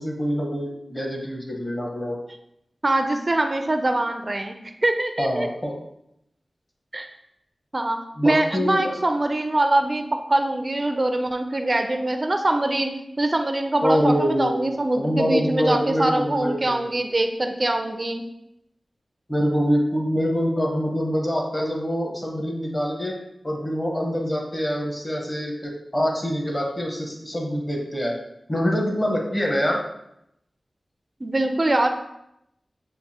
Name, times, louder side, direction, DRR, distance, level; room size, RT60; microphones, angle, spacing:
voice 1, 0.0-2.2 5.2-5.8 8.2-8.9 13.8-14.6 15.0-16.9 19.3-23.1 23.4-28.1 28.5-29.8, equal, 25° left, 0 dB, 1.0 m, -25 dB
voice 2, 2.8-5.5 6.9-7.1 7.7-8.0 8.2-12.9 13.2-18.2 31.2-31.9, right 2 dB, 35° right, 5 dB, 0.4 m, -23 dB
6.5 x 2.5 x 2.8 m, 0.80 s
wide cardioid pair, 60°, 0 cm